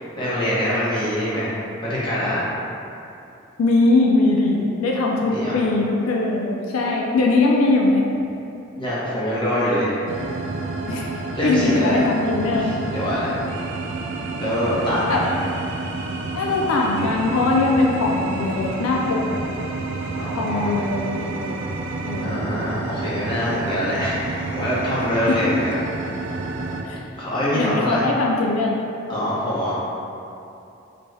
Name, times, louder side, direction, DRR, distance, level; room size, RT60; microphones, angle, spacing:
voice 1, 0.0-2.5 5.3-5.6 8.8-10.0 11.3-12.0 12.6-13.3 14.4-15.3 20.2-20.7 22.2-25.7 27.2-28.0 29.1-29.8, equal, 20° left, -9 dB, 0.8 m, -24 dB
voice 2, 3.6-8.1 10.9-12.8 15.1-15.2 16.3-19.4 20.2-21.6 22.0-22.5 25.3-25.5 26.8-27.0 27.5-28.8, left 2 dB, 85° left, -1 dB, 0.4 m, -21 dB
sound 1, 10.1-26.8, right 3 dB, 60° right, 0.3 m, -29 dB
4.0 x 2.3 x 3.2 m, 2.7 s
head